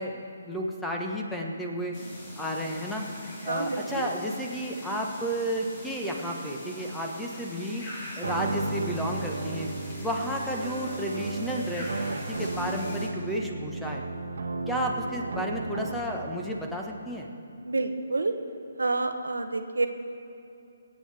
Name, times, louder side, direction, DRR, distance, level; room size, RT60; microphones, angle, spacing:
voice 1, 0.0-2.0 2.4-3.1 3.4-7.8 8.2-9.7 10.0-14.1 14.7-17.3, equal, 5° left, 0 dB, 1.2 m, -32 dB
sound 1, 1.9-13.1, left 1 dB, 35° left, 3.5 m, -43 dB
voice 2, 3.5-4.1 17.7-18.3 18.8-19.9, right 3 dB, 80° right, 7 dB, 0.9 m, -28 dB
sound 2, 8.2-16.3, right 3 dB, 65° right, 1.2 m, -34 dB
25.0 x 8.8 x 3.5 m, 2.7 s
figure-of-eight pair, 140°, 0 cm